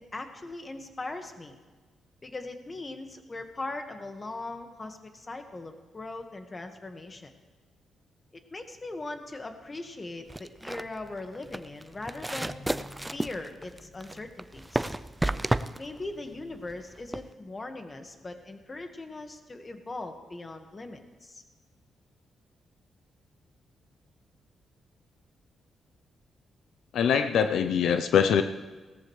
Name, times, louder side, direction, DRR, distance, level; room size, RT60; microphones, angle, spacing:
voice 1, 0.0-1.6 2.2-7.3 8.5-14.9 15.8-21.4, left 2 dB, 30° left, 6 dB, 1.6 m, -40 dB
sound 1, 10.3-17.3, right 1 dB, 10° right, 0.4 m, -32 dB
voice 2, 26.9-28.4, left 7 dB, 80° left, 8 dB, 0.5 m, -23 dB
18.0 x 14.0 x 3.2 m, 1.3 s
cardioid pair, 85°, 0 cm